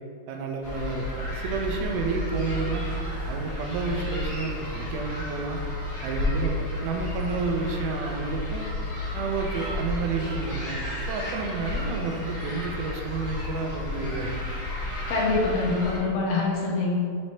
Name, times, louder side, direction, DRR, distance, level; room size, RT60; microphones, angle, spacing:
voice 1, 0.3-2.9 3.3-5.6 6.0-8.7 9.1-10.8 11.1-14.4, right 4 dB, 85° right, 2 dB, 2.5 m, -30 dB
sound 1, 0.6-16.0, left 1 dB, 45° left, 1.2 m, -32 dB
voice 2, 15.1-16.9, left 3 dB, 80° left, -4 dB, 3.1 m, -25 dB
8.8 x 4.3 x 3.1 m, 2.2 s
omnidirectional pair, 4.4 m